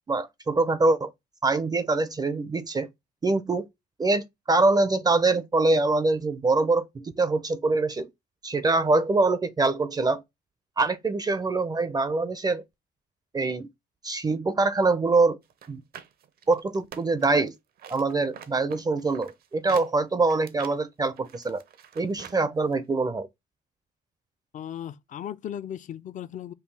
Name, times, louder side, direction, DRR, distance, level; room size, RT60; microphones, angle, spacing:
voice 1, 0.1-1.1 1.4-2.9 3.2-3.7 4.0-8.1 8.4-10.2 10.8-12.6 13.3-13.7 14.0-15.4 15.7-15.8 16.5-17.5 17.9-21.6 22.0-23.3, right 3 dB, 20° right, 0.5 m, -24 dB
sound 1, 15.5-17.5 17.8-22.4 22.7-22.8, right 8 dB, 60° right, 0.7 m, -46 dB
voice 2, 24.5-26.5, left 10 dB, 45° left, 0.4 m, -36 dB
5.4 x 2.3 x 3.3 m
cardioid pair, 90°, 18 cm